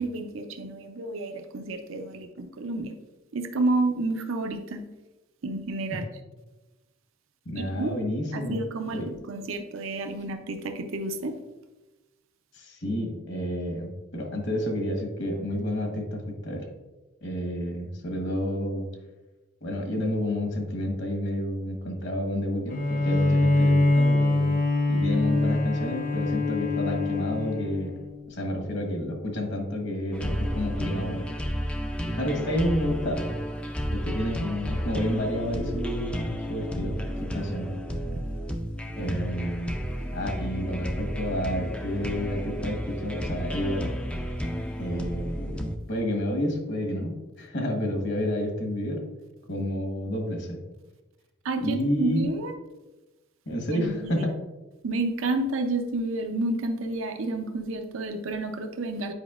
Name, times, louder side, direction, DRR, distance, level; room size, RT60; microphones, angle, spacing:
voice 1, 0.0-2.9 3.3-4.8 5.4-6.1 7.5-7.9 8.3-11.3 51.4-52.5 53.7-54.2 54.8-59.1, right 2 dB, 80° right, 6 dB, 0.6 m, -30 dB
voice 2, 7.4-8.6 8.9-9.1 12.5-16.6 17.2-18.9 19.6-24.6 24.9-27.9 28.3-31.3 32.0-33.4 33.9-37.0 37.3-37.7 38.9-39.8 40.1-43.9 44.8-49.0 49.5-50.6 51.6-52.3 53.5-54.3, left 1 dB, 55° left, 2 dB, 1.2 m, -30 dB
Bowed string instrument, 22.7-28.2, left 2 dB, 40° left, 0.6 m, -24 dB
sound 1, 30.1-45.8, equal, 5° left, 0.3 m, -32 dB
8.1 x 4.9 x 2.4 m, 1.1 s
head